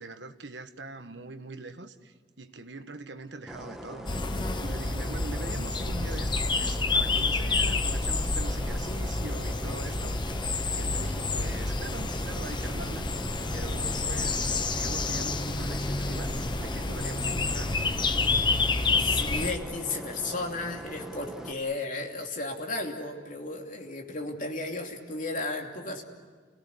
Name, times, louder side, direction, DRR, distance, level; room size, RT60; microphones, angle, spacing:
voice 1, 0.0-4.1 4.6-10.4 10.7-13.2 13.5-18.0, right 3 dB, 75° right, 1.3 m, -42 dB
sound 1, 3.5-21.5, right 1 dB, ahead, 1.4 m, -42 dB
sound 2, 4.1-19.5, left 3 dB, 25° left, 0.9 m, -29 dB
voice 2, 18.9-26.0, left 2 dB, 45° left, 2.9 m, -34 dB
29.5 x 17.5 x 9.9 m
head